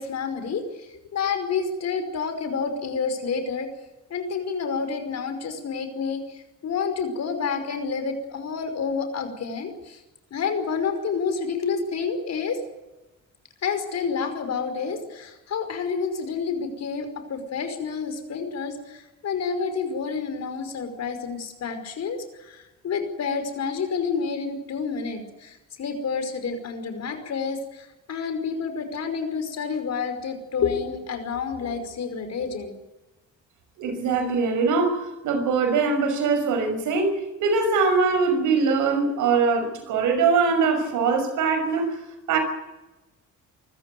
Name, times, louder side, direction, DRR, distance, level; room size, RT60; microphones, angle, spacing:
voice 1, 0.0-3.7 4.1-10.0 10.3-12.6 13.6-32.7, left 5 dB, 60° left, 8 dB, 5.3 m, -29 dB
voice 2, 33.8-35.0 35.2-42.0 42.3-42.4, right 4 dB, 85° right, 6 dB, 6.0 m, -22 dB
24.5 x 14.5 x 9.4 m, 1.0 s
cardioid pair, 90°, 30 cm